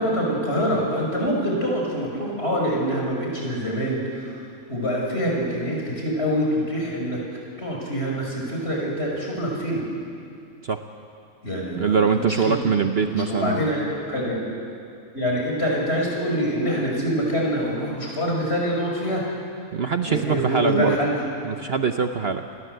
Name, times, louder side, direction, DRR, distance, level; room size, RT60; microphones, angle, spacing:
voice 1, 0.0-4.4 4.7-7.2 7.6-9.8 11.4-12.6 13.0-13.8 14.1-14.4 15.1-19.2 20.0-21.2, equal, 45° left, -2 dB, 6.3 m, -25 dB
voice 2, 11.8-13.7 19.7-21.0 21.4-22.4, right 6 dB, 50° right, 7 dB, 1.0 m, -23 dB
28.5 x 21.0 x 8.0 m, 2.4 s
omnidirectional pair, 1.5 m